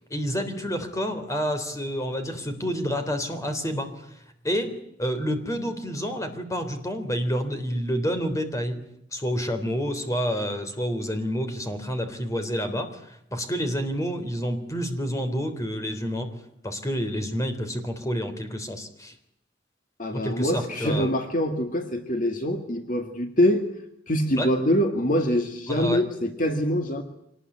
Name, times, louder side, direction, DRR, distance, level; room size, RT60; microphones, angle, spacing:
voice 1, 0.0-4.1 4.4-8.8 9.1-13.0 13.3-16.3 16.6-19.1 20.1-21.1 24.3-24.5 25.7-26.0, equal, 15° left, 7 dB, 3.6 m, -29 dB
voice 2, 20.0-23.6 24.1-27.0, equal, 45° left, 6 dB, 2.0 m, -24 dB
25.0 x 19.5 x 9.9 m, 0.78 s
head